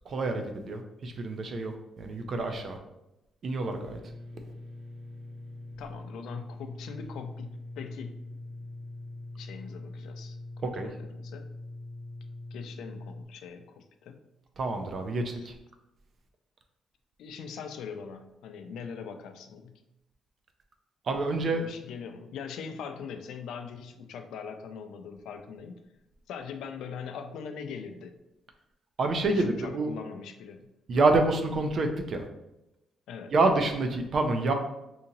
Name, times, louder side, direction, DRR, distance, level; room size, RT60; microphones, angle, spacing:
voice 1, 0.1-2.8 3.4-4.0 10.6-10.9 14.6-15.6 21.1-21.6 29.0-29.9 30.9-32.3 33.3-34.5, right 2 dB, 40° right, 5 dB, 0.4 m, -27 dB
sound 1, 3.7-13.2, left 2 dB, 75° right, 0.7 m, -43 dB
voice 2, 5.8-8.2 9.4-11.5 12.5-14.2 15.3-15.5 17.2-19.8 21.5-25.8 26.3-28.1 29.3-30.7 33.1-33.3, left 6 dB, 85° left, 7 dB, 0.4 m, -42 dB
2.8 x 2.7 x 3.8 m, 0.91 s
cardioid pair, 165°, 0 cm